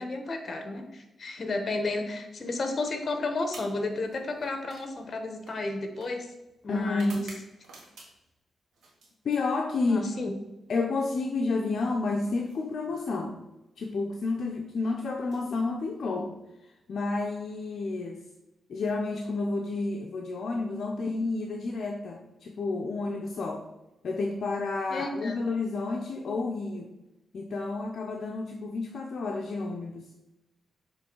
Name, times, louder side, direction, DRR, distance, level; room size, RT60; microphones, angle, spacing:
voice 1, 0.0-6.3 6.6-7.3 9.9-10.3 24.9-25.3, left 2 dB, 45° left, 5 dB, 1.1 m, -32 dB
sound 1, 3.4-8.4 8.7-10.0 11.2-13.0 14.1-14.4 15.1-16.3, right 2 dB, 85° right, 1.8 m, -53 dB
voice 2, 6.7-7.3 9.2-10.1 10.7-13.4 13.8-16.3 16.9-18.2 18.7-23.6 24.0-26.9 27.3-30.1, left 3 dB, 60° left, 1 dB, 0.6 m, -30 dB
6.8 x 3.2 x 4.5 m, 0.96 s
cardioid pair, 95°, 0 cm